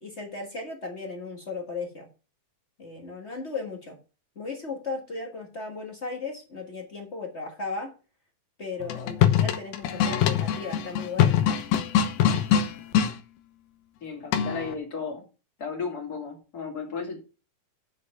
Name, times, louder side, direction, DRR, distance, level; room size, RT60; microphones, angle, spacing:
voice 1, 0.0-2.1 2.8-4.0 4.3-7.9 8.6-11.4, left 3 dB, 50° left, 1 dB, 0.7 m, -36 dB
sound 1, 8.8-13.1 14.3-14.7, left 9 dB, 90° left, 2.7 m, -23 dB
voice 2, 14.0-15.2 15.6-17.2, left 5 dB, 30° left, 2 dB, 2.2 m, -34 dB
7.5 x 6.5 x 6.9 m, 0.34 s
omnidirectional pair, 4.0 m